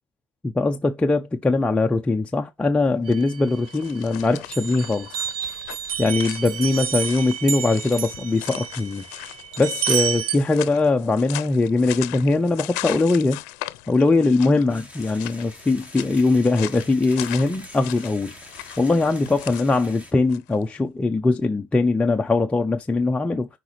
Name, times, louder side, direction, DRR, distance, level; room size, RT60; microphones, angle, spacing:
voice 1, 0.4-5.3 6.0-9.0 9.6-13.4 13.9-18.3 18.8-23.5, left 3 dB, 15° left, 0.6 m, -21 dB
sound 1, 3.0-20.6, left 20 dB, 90° left, 0.6 m, -39 dB
sound 2, 3.1-4.1 4.5-10.4, right 8 dB, 70° right, 1.4 m, -30 dB
sound 3, 14.7-20.1, left 1 dB, 15° right, 3.1 m, -44 dB
8.0 x 5.0 x 3.2 m
supercardioid pair, 110°, 9 cm